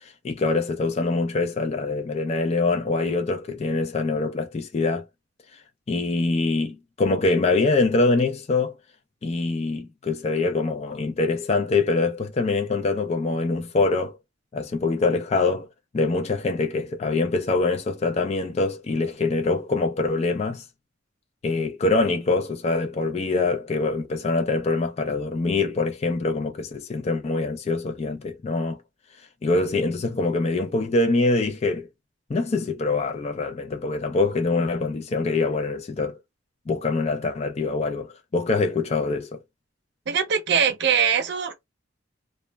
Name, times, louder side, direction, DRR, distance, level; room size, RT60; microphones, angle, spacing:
voice 1, 0.0-5.0 5.9-8.7 9.2-14.2 14.5-15.7 15.9-20.6 21.4-28.8 29.4-31.9 32.3-36.2 36.7-39.4, left 3 dB, 35° left, 0.4 m, -24 dB
voice 2, 40.1-41.6, right 7 dB, 60° right, 0.5 m, -22 dB
2.2 x 2.0 x 3.2 m
head